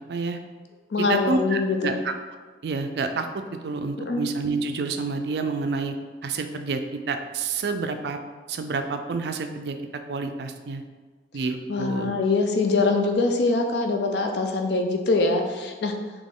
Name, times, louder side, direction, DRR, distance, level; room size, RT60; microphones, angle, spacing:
voice 1, 0.1-0.4 1.0-1.9 2.6-5.9 6.2-8.2 8.5-9.8 10.1-10.8 11.3-12.1, right 4 dB, 70° right, 7 dB, 0.4 m, -28 dB
voice 2, 0.9-2.0 4.1-4.2 11.7-15.9, left 3 dB, 75° left, 4 dB, 0.5 m, -23 dB
4.1 x 2.9 x 3.6 m, 1.4 s
head